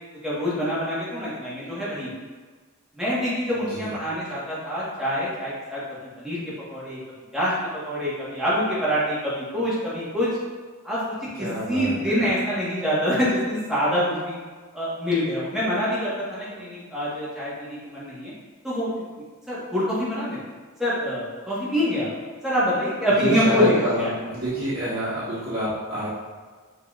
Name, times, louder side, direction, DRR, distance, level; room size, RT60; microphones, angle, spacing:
voice 1, 0.2-2.1 2.9-5.8 6.2-6.4 6.7-7.0 7.3-10.3 10.8-14.4 14.7-18.3 18.6-18.9 19.5-20.4 20.8-22.1 22.4-23.7 24.0-24.1, equal, ahead, -10 dB, 1.4 m, -25 dB
voice 2, 11.4-12.3 23.2-26.1, right 1 dB, 50° right, -11 dB, 1.3 m, -27 dB
5.4 x 4.0 x 2.5 m, 1.5 s
head